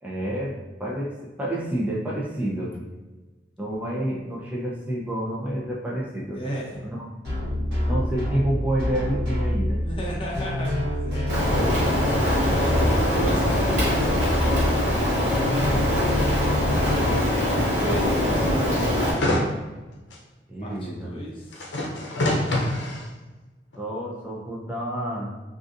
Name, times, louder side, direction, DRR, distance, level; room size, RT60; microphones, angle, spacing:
voice 1, 0.0-2.8 3.6-6.4 6.8-7.1 7.9-9.8 17.4-17.9 20.5-21.1 23.8-25.3, right 1 dB, 10° right, -4 dB, 0.6 m, -29 dB
voice 2, 6.3-6.8 9.8-11.3 12.5-14.8 15.7-16.3 17.5-19.6 20.6-21.6, equal, 30° left, -3 dB, 0.7 m, -34 dB
sound 1, 7.2-17.1, equal, 65° right, 1.2 m, -27 dB
Rain, 11.3-19.1, left 1 dB, 45° right, 1.2 m, -23 dB
sound 2, 18.8-19.5 20.1-20.2 21.5-23.0 23.7-23.8, left 1 dB, 90° left, 0.6 m, -25 dB
3.8 x 2.6 x 2.5 m, 1.2 s
head